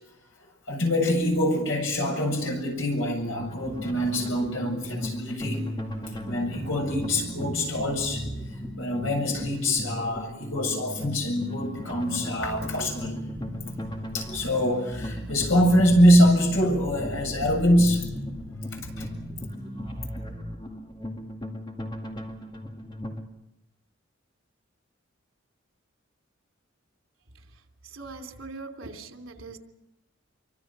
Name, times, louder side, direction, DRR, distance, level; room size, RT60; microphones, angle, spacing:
voice 1, 0.7-5.6 6.2-8.2 8.5-13.2 14.1-18.3 18.7-19.1, equal, 80° left, 2 dB, 7.7 m, -24 dB
sound 1, 3.3-23.2, left 1 dB, 25° left, 2.2 m, -38 dB
sound 2, 3.6-20.6, equal, 5° right, 6.6 m, -38 dB
voice 2, 27.8-29.6, right 3 dB, 80° right, 4 dB, 3.0 m, -41 dB
27.5 x 24.5 x 6.2 m, 0.91 s
head